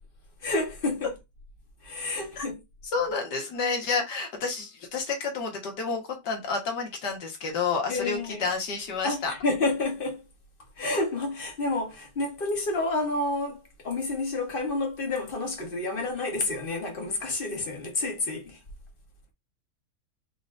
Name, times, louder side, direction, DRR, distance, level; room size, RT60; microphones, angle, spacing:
voice 1, 0.4-1.1 1.8-2.6 7.9-8.5 9.0-10.2 10.8-18.6, left 2 dB, 35° left, 1.2 m, -29 dB
voice 2, 2.9-9.3, left 4 dB, 85° left, 2.0 m, -30 dB
4.9 x 3.8 x 2.6 m
omnidirectional pair, 1.8 m